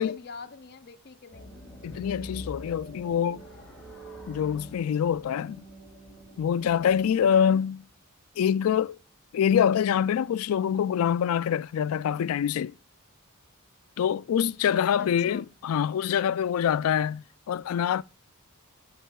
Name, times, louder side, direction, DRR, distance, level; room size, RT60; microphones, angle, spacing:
voice 1, 0.0-1.5 7.3-7.6 15.0-15.5, left 4 dB, 50° left, 0.7 m, -43 dB
sound 1, 1.3-7.6, equal, 5° left, 2.0 m, -45 dB
voice 2, 1.8-3.4 4.3-5.6 6.4-7.8 8.4-9.0 9.3-12.7 14.0-18.0, left 8 dB, 75° left, 0.3 m, -25 dB
14.5 x 5.5 x 2.2 m
head